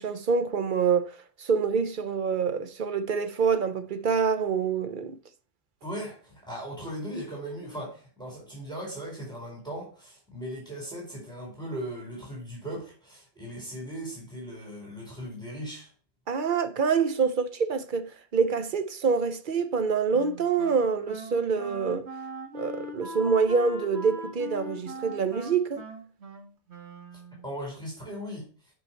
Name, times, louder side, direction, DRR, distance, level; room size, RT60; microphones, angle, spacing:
voice 1, 0.0-5.2 16.3-22.1 22.5-25.8, right 5 dB, 50° right, 0.8 m, -26 dB
voice 2, 5.8-15.9 27.4-28.5, equal, 5° left, 4.3 m, -38 dB
Wind instrument woodwind instrument, 20.1-27.5, equal, 70° right, 1.9 m, -41 dB
9.5 x 5.7 x 4.4 m
omnidirectional pair, 1.1 m